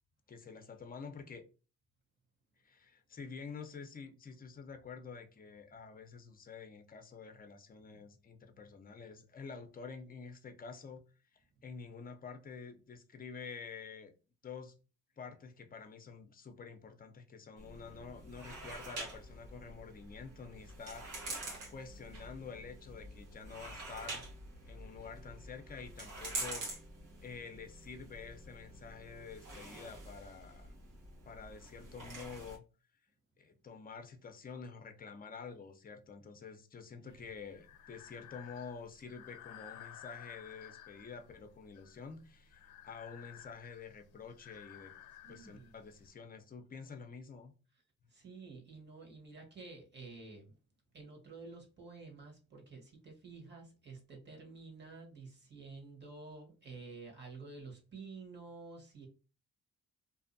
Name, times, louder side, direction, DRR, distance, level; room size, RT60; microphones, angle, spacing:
voice 1, 0.3-1.4 2.6-11.0 11.3-14.1 14.4-14.7 15.2-21.3 21.7-24.2 24.7-26.7 27.2-30.7 31.3-32.6 33.4-44.9 45.3-47.5, left 5 dB, 30° left, 0.6 m, -48 dB
sound 1, 17.6-32.6, right 2 dB, 90° right, 1.1 m, -47 dB
Breathing, 37.1-46.1, left 11 dB, 85° left, 0.5 m, -55 dB
voice 2, 45.2-45.7 48.1-50.5 50.9-59.1, right 3 dB, 35° right, 1.3 m, -51 dB
2.6 x 2.4 x 2.5 m
cardioid pair, 90°, 30 cm